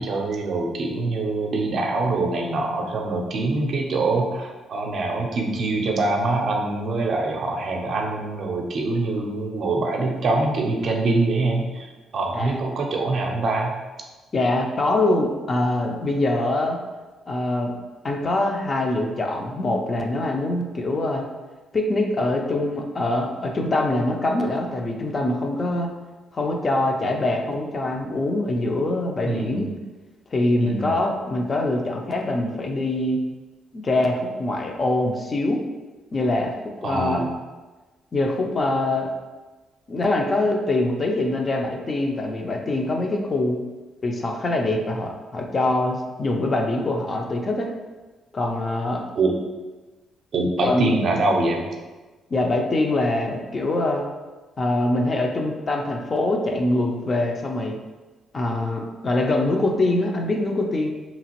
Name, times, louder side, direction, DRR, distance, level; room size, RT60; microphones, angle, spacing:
voice 1, 0.0-13.8 29.2-29.7 30.6-30.9 36.8-37.3 49.2-49.3 50.3-51.6, right 2 dB, 60° right, 1 dB, 0.5 m, -24 dB
voice 2, 12.3-12.8 14.3-16.8 17.3-17.7 18.0-21.3 21.7-25.9 26.3-29.7 30.3-33.2 33.7-35.6 36.1-36.5 36.8-37.3 38.1-39.1 39.9-43.6 44.0-47.7 48.3-49.1 50.6-51.0 52.3-54.0 54.6-57.7 58.3-60.9, left 2 dB, 35° left, 2 dB, 0.4 m, -24 dB
2.9 x 2.4 x 2.9 m, 1.2 s
cardioid pair, 90°, 0 cm